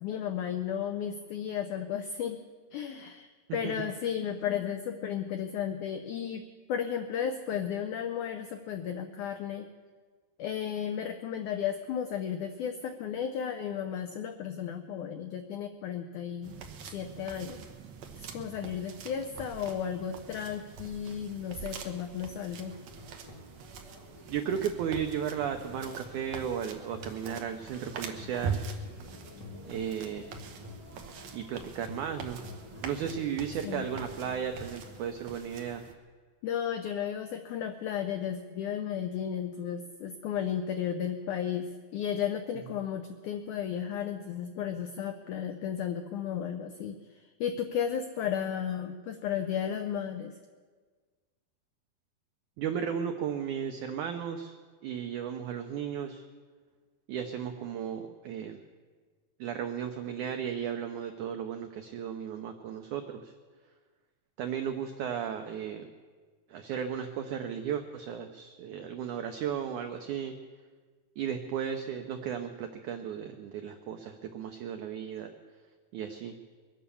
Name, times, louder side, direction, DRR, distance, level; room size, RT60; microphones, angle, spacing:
voice 1, 0.0-2.4 2.7-6.4 6.7-9.7 10.4-17.6 18.2-22.7 33.6-33.9 36.4-47.0 47.4-50.3, left 8 dB, 85° left, 7 dB, 1.7 m, -34 dB
sound 1, 16.4-35.9, right 5 dB, 65° right, 1.9 m, -43 dB
sound 2, 22.5-35.1, left 2 dB, 45° left, 1.4 m, -49 dB
voice 2, 24.3-28.6 29.7-30.3 31.3-32.4 32.8-35.8 52.6-54.5 54.8-56.2 57.1-58.6 59.4-63.3 64.4-65.9 66.5-70.3 71.2-75.3 75.9-76.4, right 8 dB, 90° right, 6 dB, 1.7 m, -35 dB
22.5 x 9.2 x 7.0 m, 1.5 s
omnidirectional pair, 4.5 m